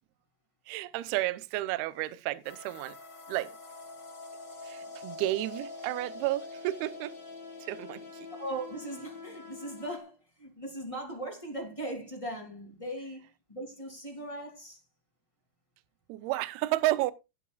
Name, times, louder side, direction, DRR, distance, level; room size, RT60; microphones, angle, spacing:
voice 1, 0.7-2.9 3.3-3.5 4.7-7.1 7.7-8.0 16.1-17.1, right 17 dB, 85° right, 2.2 m, -31 dB
sound 1, 2.4-10.0, left 3 dB, 40° left, 1.4 m, -45 dB
voice 2, 8.4-14.8, right 1 dB, 10° left, 2.2 m, -39 dB
17.0 x 8.3 x 2.4 m
omnidirectional pair, 5.4 m